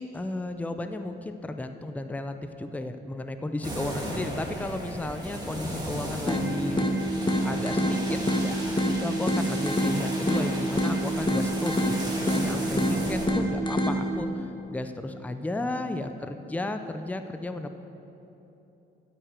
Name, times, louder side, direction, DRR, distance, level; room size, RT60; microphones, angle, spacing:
voice 1, 0.0-17.7, left 2 dB, 5° left, 8 dB, 0.5 m, -34 dB
sound 1, 3.6-13.3, right 1 dB, 20° right, 2.2 m, -36 dB
sound 2, 6.3-14.3, equal, 25° left, 1.2 m, -27 dB
9.3 x 6.2 x 8.2 m, 3.0 s
cardioid pair, 90°, 20 cm